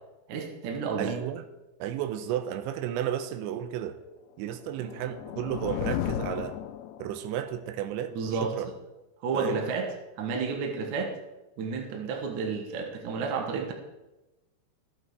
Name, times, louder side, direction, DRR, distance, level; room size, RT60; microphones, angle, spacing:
voice 1, 0.3-1.1 8.1-8.5 9.2-9.9 10.2-11.1 11.6-13.7, right 4 dB, 60° right, 3 dB, 2.2 m, -31 dB
voice 2, 1.0-1.5 1.8-4.0 4.4-6.6 7.0-8.7 9.3-9.6 11.9-12.1, right 10 dB, 85° right, 10 dB, 3.1 m, -33 dB
sound 1, 4.6-7.4, left 12 dB, 80° left, 2.5 m, -34 dB
14.0 x 8.8 x 4.7 m, 1.0 s
omnidirectional pair, 5.2 m